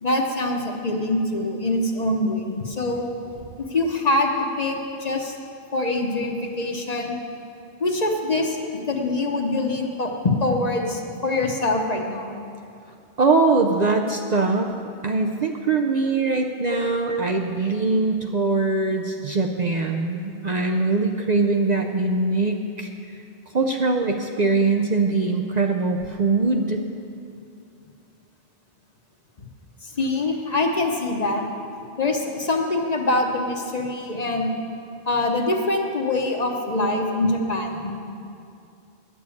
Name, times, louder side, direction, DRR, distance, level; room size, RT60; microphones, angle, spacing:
voice 1, 0.0-3.1 3.6-5.4 5.7-7.2 7.8-12.4 16.7-16.8 17.0-17.2 29.8-31.4 32.0-34.5 35.1-37.9, left 2 dB, 40° left, 2 dB, 1.0 m, -24 dB
voice 2, 13.2-14.7 15.0-23.2 23.5-26.8, right 3 dB, 50° right, 2 dB, 0.6 m, -22 dB
10.5 x 7.0 x 8.4 m, 2.5 s
omnidirectional pair, 1.1 m